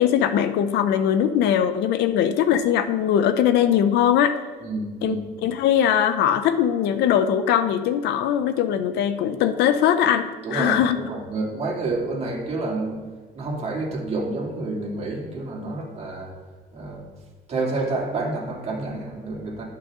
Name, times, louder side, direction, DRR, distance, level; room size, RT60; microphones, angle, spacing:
voice 1, 0.0-4.4 5.0-5.2 5.4-11.0, left 9 dB, 80° left, 11 dB, 0.6 m, -21 dB
voice 2, 4.6-5.3 10.4-13.0 13.4-16.3 16.7-17.1 17.5-19.6, right 2 dB, 40° right, -2 dB, 2.5 m, -29 dB
12.0 x 5.6 x 3.7 m, 1.3 s
cardioid pair, 110°, 17 cm